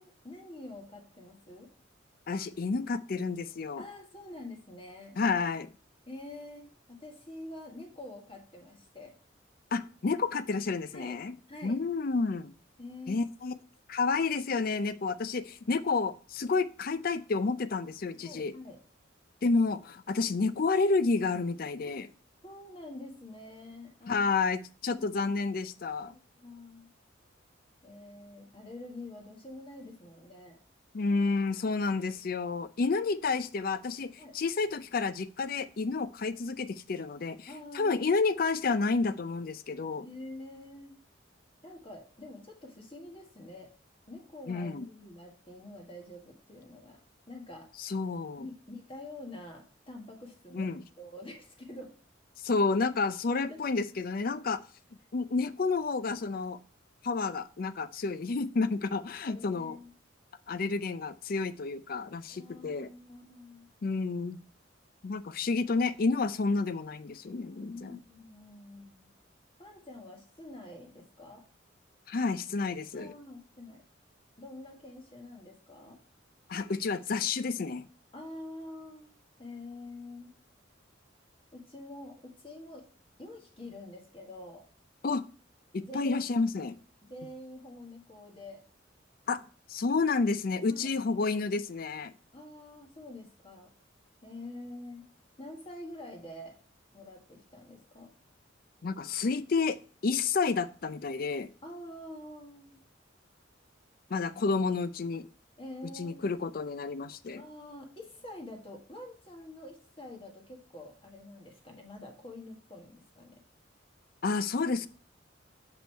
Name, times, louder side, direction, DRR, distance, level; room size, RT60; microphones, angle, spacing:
voice 1, 0.0-1.7 3.8-5.2 6.1-9.1 10.9-11.2 11.5-11.8 12.8-13.2 18.1-18.8 21.8-22.0 22.4-24.3 24.9-25.4 26.0-26.9 27.8-30.6 34.2-34.3 37.5-38.1 40.0-41.0 41.6-43.7 44.1-47.0 47.3-47.7 48.4-50.7 51.0-51.9 53.5-53.6 59.3-59.9 62.3-63.7 67.4-69.1 69.6-71.4 72.9-73.8 74.4-76.0 78.1-80.3 81.5-82.9 83.2-84.6 85.8-86.4 87.1-88.6 90.7-91.3 92.3-93.7 94.2-95.1 95.4-96.6 96.9-98.1 101.6-102.8 105.6-106.4 107.3-113.4, left 1 dB, 30° left, 2 dB, 1.5 m, -46 dB
voice 2, 2.3-3.8 5.2-5.7 9.7-11.3 11.6-12.5 13.1-13.5 13.9-18.5 19.4-22.1 24.1-26.1 30.9-37.5 37.7-40.0 44.5-44.9 47.8-48.5 50.5-50.8 52.4-54.6 55.1-56.6 57.0-59.8 60.5-62.9 63.8-64.4 65.0-67.9 72.1-73.1 76.5-77.9 85.0-85.2 85.7-86.8 89.3-89.4 89.7-92.1 98.8-99.8 100.0-101.5 104.1-105.3 106.0-107.4 114.2-114.9, left 4 dB, 50° left, 14 dB, 0.4 m, -30 dB
6.3 x 5.3 x 4.5 m, 0.39 s
head